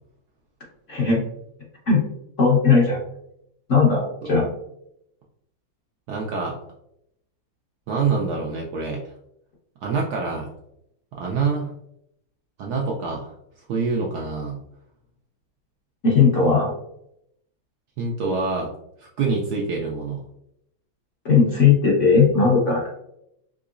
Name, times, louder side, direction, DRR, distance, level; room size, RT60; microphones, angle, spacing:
voice 1, 0.9-1.2 1.9-2.0 2.4-3.0 3.7-4.5 16.0-16.7 21.2-22.9, left 5 dB, 50° left, -5 dB, 1.0 m, -17 dB
voice 2, 6.1-6.6 7.9-9.0 9.8-10.5 11.1-11.7 12.6-13.3 13.7-14.6 18.0-18.7 19.0-20.2, right 4 dB, 75° right, -1 dB, 0.9 m, -26 dB
3.8 x 3.0 x 2.4 m, 0.77 s
omnidirectional pair, 2.2 m